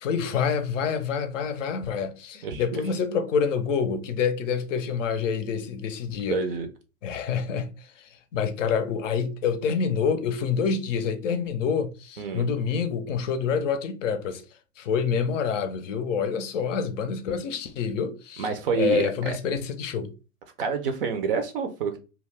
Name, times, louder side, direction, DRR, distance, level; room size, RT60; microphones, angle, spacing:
voice 1, 0.0-6.4 7.0-7.7 8.0-14.4 14.8-18.5 18.7-20.1, left 6 dB, 55° left, 0.6 m, -27 dB
voice 2, 2.4-2.8 6.3-6.7 12.2-12.5 18.4-19.4 20.6-22.0, right 6 dB, 40° right, 0.4 m, -28 dB
2.3 x 2.1 x 3.3 m
hypercardioid pair, 125°, 45 cm